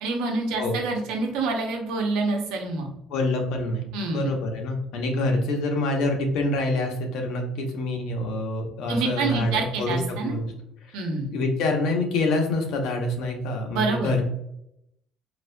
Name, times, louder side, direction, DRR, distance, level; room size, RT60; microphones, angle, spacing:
voice 1, 0.0-2.9 3.9-4.3 8.9-10.3 10.9-11.3 13.7-14.1, right 3 dB, 85° right, 2 dB, 0.8 m, -27 dB
voice 2, 3.1-10.5 10.8-11.0 11.3-14.3, left 2 dB, 70° left, 2 dB, 0.8 m, -26 dB
4.0 x 2.6 x 2.2 m, 0.79 s
cardioid pair, 145°, 0 cm